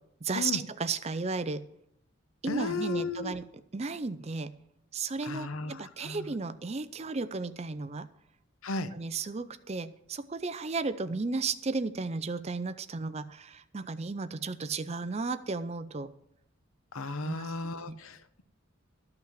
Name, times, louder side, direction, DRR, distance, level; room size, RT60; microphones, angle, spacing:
voice 1, 0.2-1.7 2.4-3.5 3.7-4.5 4.9-8.1 8.9-16.1 17.2-17.5 17.9-18.0, right 4 dB, 30° right, 13 dB, 0.5 m, -34 dB
voice 2, 2.5-3.3 5.2-6.3 8.6-8.9 16.9-18.4, left 3 dB, 85° left, 12 dB, 0.9 m, -35 dB
13.0 x 5.9 x 7.5 m, 0.75 s
head